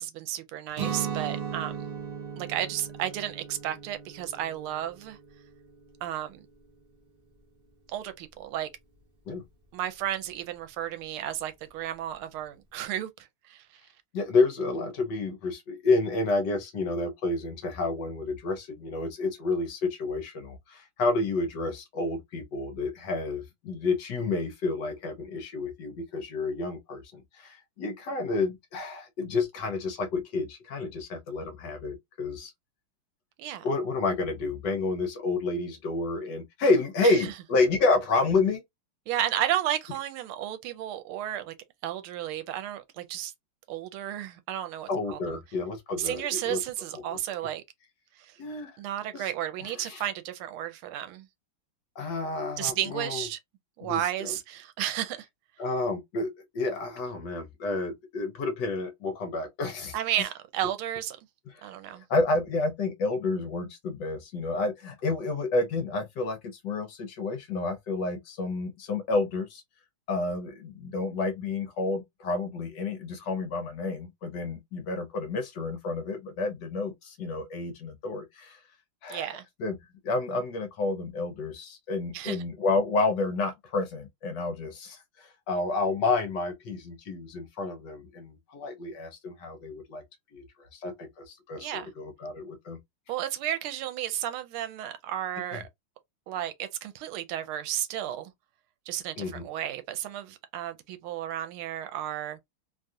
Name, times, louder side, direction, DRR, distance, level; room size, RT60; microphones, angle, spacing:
voice 1, 0.0-1.9 2.4-5.2 6.0-6.5 7.9-8.7 9.7-13.1 13.5-13.8 33.4-33.7 37.0-37.1 39.1-41.5 41.8-43.3 43.7-45.4 46.0-47.6 48.2-48.3 48.8-51.3 52.6-53.4 53.8-55.2 59.9-61.2 61.6-62.0 79.1-79.4 82.1-82.4 91.6-91.9 93.1-95.7 96.3-98.3 98.9-102.4, right 11 dB, 80° right, 1.4 m, -33 dB
Guitar, 0.7-6.6, right 7 dB, 65° right, 0.5 m, -37 dB
voice 2, 14.1-32.5 33.6-38.6 44.9-46.6 46.9-47.2 48.4-48.8 49.1-49.3 49.6-50.0 52.0-53.3 53.8-54.3 55.6-60.2 61.5-61.6 62.1-69.6 70.1-78.6 79.0-79.8 80.0-90.0 90.3-92.8 95.5-95.6 99.2-99.5, left 3 dB, 65° left, 1.3 m, -30 dB
3.4 x 2.3 x 2.6 m
omnidirectional pair, 2.3 m